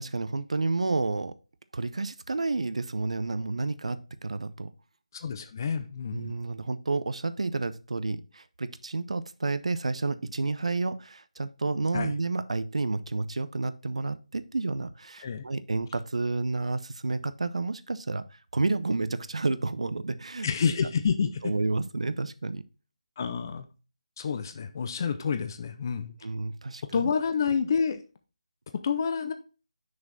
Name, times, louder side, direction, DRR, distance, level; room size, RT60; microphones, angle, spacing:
voice 1, 0.0-1.3 1.7-4.7 6.1-20.5 20.8-20.9 21.4-22.6 26.2-27.1, right 3 dB, 70° right, 13 dB, 0.6 m, -30 dB
voice 2, 5.1-6.4 11.9-12.1 15.2-15.4 20.4-21.5 23.2-23.6 24.2-26.1 26.8-28.0 28.7-29.3, left 6 dB, 35° left, 9 dB, 0.6 m, -28 dB
6.3 x 4.9 x 4.0 m, 0.33 s
figure-of-eight pair, 160°, 4 cm